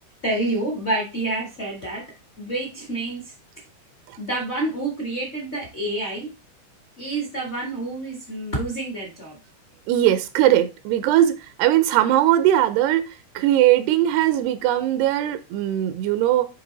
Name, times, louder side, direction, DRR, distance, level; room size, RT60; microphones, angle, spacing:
voice 1, 0.2-3.3 4.2-6.3 7.0-9.4, right 2 dB, 60° left, 0.6 m, -28 dB
voice 2, 9.9-16.5, right 12 dB, 85° right, 2.6 m, -20 dB
9.6 x 3.3 x 3.9 m
omnidirectional pair, 4.6 m